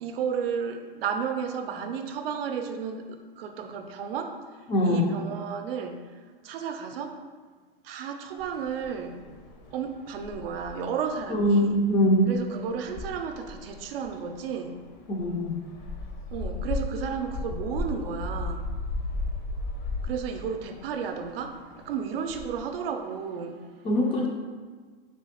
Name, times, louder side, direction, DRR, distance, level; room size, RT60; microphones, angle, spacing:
voice 1, 0.0-4.4 4.8-6.0 6.4-7.2 7.8-9.2 9.7-11.8 12.3-14.8 16.3-18.6 20.0-23.7, right 6 dB, 75° right, 5 dB, 0.5 m, -33 dB
voice 2, 4.7-5.1 11.3-12.3 15.1-15.6 23.8-24.3, equal, 20° left, 0 dB, 0.3 m, -22 dB
sound 1, 8.4-22.6, left 2 dB, 55° left, 0.7 m, -37 dB
3.3 x 3.1 x 2.8 m, 1.5 s
hypercardioid pair, 125°, 29 cm